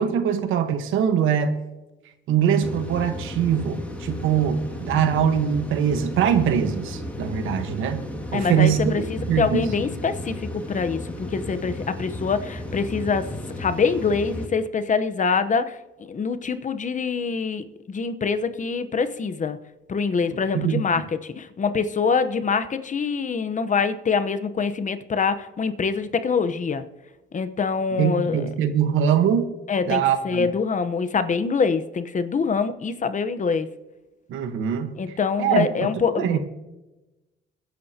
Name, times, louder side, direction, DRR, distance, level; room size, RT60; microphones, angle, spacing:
voice 1, 0.0-1.5 2.3-8.1 8.3-9.7 20.5-20.8 28.0-29.5 29.8-30.5 34.3-36.4, right 8 dB, 90° right, 1.3 m, -23 dB
sound 1, 2.6-14.5, left 1 dB, 5° left, 2.2 m, -34 dB
voice 2, 8.3-15.8 16.1-19.6 19.9-21.1 21.4-26.8 27.3-28.5 29.7-33.7 35.0-36.4, left 5 dB, 40° left, 1.0 m, -25 dB
22.0 x 10.5 x 2.9 m
cardioid pair, 90°, 20 cm